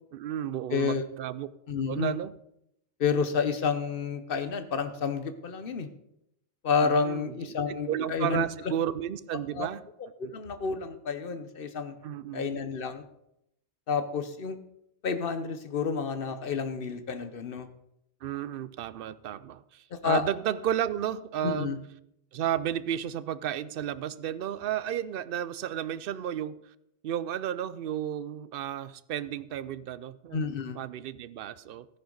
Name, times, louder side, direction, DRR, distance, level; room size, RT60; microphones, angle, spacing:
voice 1, 0.1-1.5 1.9-2.3 6.8-7.5 7.9-9.8 10.2-10.3 12.0-12.6 18.2-21.8 22.3-26.6 27.0-30.4 30.8-31.9, right 10 dB, 60° right, 16 dB, 0.7 m, -32 dB
voice 2, 0.7-1.0 1.7-2.2 3.0-5.9 6.6-8.7 9.5-9.7 10.2-11.9 12.3-13.0 13.9-14.6 15.0-17.7 19.9-20.2 21.4-21.8 30.3-30.8, left 5 dB, 55° left, 10 dB, 1.0 m, -30 dB
14.0 x 10.0 x 3.9 m, 0.80 s
omnidirectional pair, 1.2 m